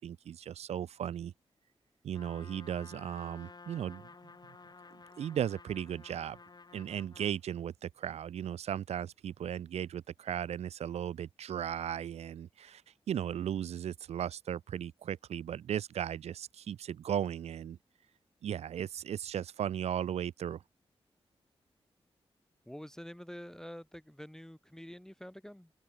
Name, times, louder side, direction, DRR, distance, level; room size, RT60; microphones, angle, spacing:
voice 1, 0.0-1.3 2.0-4.1 5.2-6.4 6.7-12.8 13.1-17.8 18.4-20.6, right 9 dB, 90° right, 0.6 m, -36 dB
Trumpet, 2.1-7.4, left 4 dB, 40° left, 1.3 m, -53 dB
voice 2, 22.6-25.7, equal, 5° left, 1.6 m, -47 dB
open air
cardioid pair, 50°, 11 cm